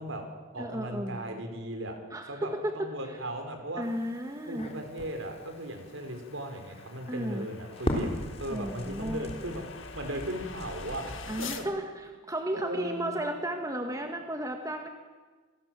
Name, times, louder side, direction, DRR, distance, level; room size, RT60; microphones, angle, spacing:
voice 1, 0.0-2.0 2.3-3.9 4.5-11.7 12.5-13.1, right 1 dB, 65° right, 5 dB, 4.6 m, -37 dB
voice 2, 0.6-1.2 2.1-2.7 3.1-3.2 3.8-4.7 7.1-7.5 8.5-9.3 11.3-14.9, right 1 dB, 15° right, 4 dB, 1.7 m, -34 dB
sound 1, 3.3-11.7, left 7 dB, 65° left, 1.7 m, -47 dB
Crackle, 3.8-11.6, left 1 dB, 30° left, 3.7 m, -39 dB
27.5 x 19.0 x 7.6 m, 1.4 s
head